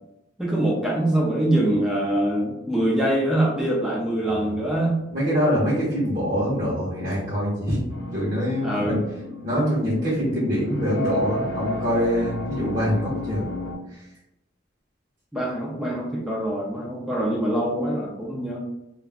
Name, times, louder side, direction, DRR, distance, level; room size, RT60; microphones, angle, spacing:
voice 1, 0.4-5.0 8.6-9.0 15.3-18.6, right 1 dB, 5° right, -4 dB, 0.4 m, -24 dB
voice 2, 4.3-4.6 5.1-7.8 8.1-9.0 9.4-13.5 13.9-14.0, equal, 45° right, -8 dB, 0.8 m, -24 dB
sound 1, 7.9-13.7, left 1 dB, 50° left, 0.6 m, -33 dB
2.3 x 2.1 x 3.3 m, 0.89 s
head